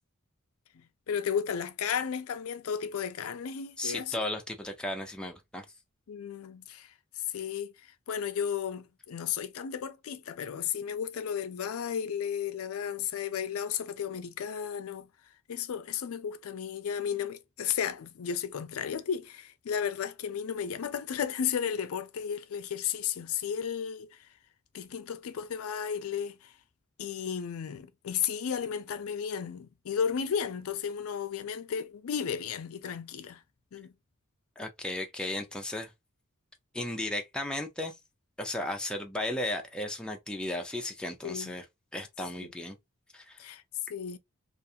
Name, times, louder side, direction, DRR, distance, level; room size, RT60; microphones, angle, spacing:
voice 1, 0.7-4.2 6.1-15.1 15.5-24.2 24.7-26.5 27.0-33.4 33.7-33.9 41.2-41.6 42.4-42.5 43.4-43.6 43.9-44.2, left 8 dB, 80° left, 0.4 m, -34 dB
voice 2, 3.8-5.6 34.6-35.9 36.7-38.0 38.4-41.6 41.9-42.8 43.1-43.4, left 1 dB, 5° left, 0.4 m, -35 dB
2.4 x 2.3 x 2.6 m
head